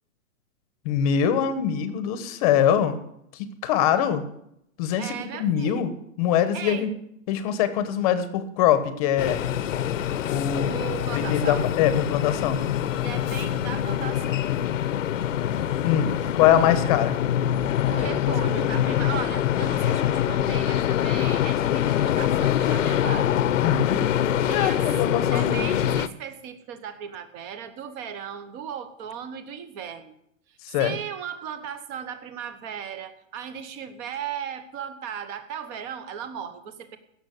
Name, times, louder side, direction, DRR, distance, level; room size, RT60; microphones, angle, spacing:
voice 1, 0.8-3.0 3.3-4.3 4.8-6.9 7.3-9.4 10.3-10.7 11.1-12.6 15.8-17.2 18.0-18.7 23.6-24.0 24.5-25.5 30.6-30.9, left 9 dB, 25° left, 12 dB, 1.0 m, -23 dB
voice 2, 5.0-5.9 6.5-6.9 10.7-11.7 13.0-14.4 16.2-16.3 17.9-23.4 24.5-24.9 25.3-30.1 30.5-37.0, right 8 dB, 20° right, 11 dB, 0.9 m, -36 dB
sound 1, 9.2-26.1, left 11 dB, 65° left, 0.9 m, -24 dB
16.5 x 7.0 x 8.2 m, 0.76 s
hypercardioid pair, 165°, 41 cm